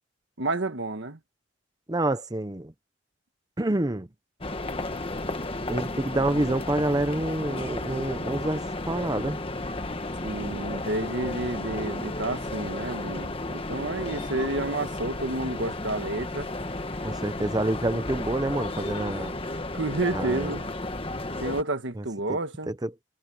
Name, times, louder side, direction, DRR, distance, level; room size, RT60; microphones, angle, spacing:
voice 1, 0.4-1.2 10.2-16.5 19.7-20.6 21.4-22.7, right 2 dB, 70° right, 1.6 m, -30 dB
voice 2, 1.9-2.7 3.6-4.1 5.7-9.4 17.0-19.3 20.1-20.5 22.0-22.4 22.7-22.9, right 1 dB, 20° right, 0.7 m, -28 dB
sound 1, 4.4-21.6, left 2 dB, 30° left, 1.4 m, -33 dB
head